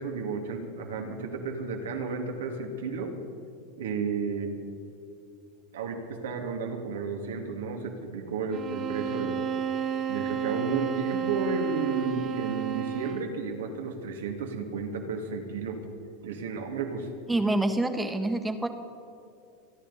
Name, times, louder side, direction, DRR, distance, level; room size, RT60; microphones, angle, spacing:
voice 1, 0.0-3.1 3.8-4.5 5.7-9.4 10.1-15.8 16.2-17.1, right 4 dB, 80° right, 3 dB, 2.2 m, -33 dB
sound 1, 8.5-13.4, right 7 dB, 35° right, 1.4 m, -31 dB
voice 2, 17.3-18.7, right 2 dB, 10° right, 6 dB, 1.6 m, -26 dB
28.5 x 10.5 x 4.2 m, 2.6 s
hypercardioid pair, 105°, 0 cm